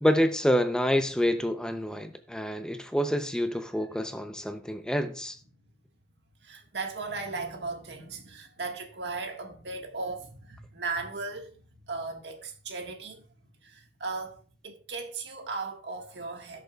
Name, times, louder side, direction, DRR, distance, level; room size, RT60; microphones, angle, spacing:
voice 1, 0.0-5.4, equal, 5° left, 0.6 m, -27 dB
voice 2, 6.4-11.6 11.8-13.2 13.6-16.6, right 3 dB, 80° right, 1.6 m, -37 dB
17.0 x 6.5 x 2.3 m
head